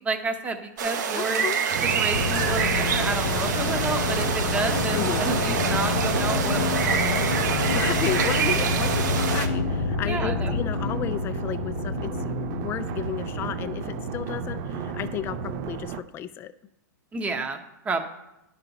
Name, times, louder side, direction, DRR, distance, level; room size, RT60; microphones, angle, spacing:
voice 1, 0.0-1.5 1.8-7.5 8.5-8.9 10.1-10.5 17.1-17.6 17.8-18.0, right 3 dB, 15° right, 6 dB, 0.9 m, -30 dB
sound 1, 0.8-9.5, right 6 dB, 75° right, 1.0 m, -26 dB
voice 2, 1.1-1.6 4.9-5.3 7.7-16.5, left 10 dB, 25° left, 12 dB, 0.4 m, -33 dB
sound 2, 1.7-16.0, right 7 dB, 40° right, 0.5 m, -33 dB
sound 3, 2.1-15.5, left 6 dB, 75° left, 0.5 m, -29 dB
10.5 x 4.1 x 5.8 m, 0.89 s
hypercardioid pair, 140°, 10 cm